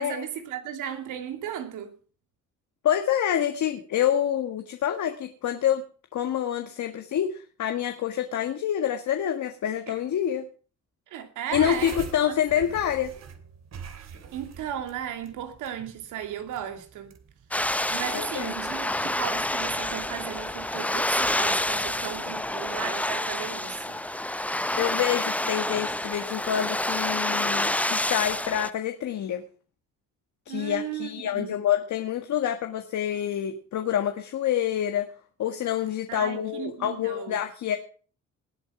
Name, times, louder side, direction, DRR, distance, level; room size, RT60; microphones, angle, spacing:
voice 1, 0.0-1.9 9.9-10.0 11.1-12.0 12.3-12.7 14.3-17.1 17.9-24.0 30.5-31.6 36.1-37.4, right 10 dB, 90° right, 2.5 m, -35 dB
voice 2, 2.8-5.8 6.1-10.4 11.5-13.1 18.1-18.5 24.8-29.4 30.5-35.1 35.4-37.8, left 10 dB, 70° left, 1.7 m, -27 dB
sound 1, 11.5-18.4, right 7 dB, 60° right, 2.8 m, -44 dB
sound 2, 17.5-28.7, left 1 dB, 5° left, 0.6 m, -28 dB
19.5 x 8.3 x 6.0 m
cardioid pair, 90°, 30 cm